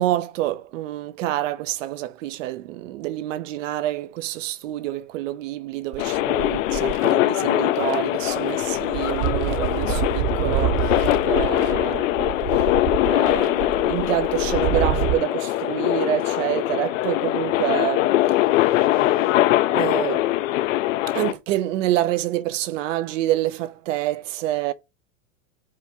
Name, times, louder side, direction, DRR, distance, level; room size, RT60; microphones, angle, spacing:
voice 1, 0.0-12.8 13.1-19.3 19.7-20.3 21.1-24.7, right 14 dB, 70° right, 0.8 m, -27 dB
sound 1, 5.9-7.1 7.8-7.9 8.3-15.1, right 13 dB, 30° right, 0.4 m, -28 dB
sound 2, 6.0-21.3, left 15 dB, 75° left, 0.7 m, -22 dB
5.2 x 3.4 x 5.6 m
supercardioid pair, 140°, 39 cm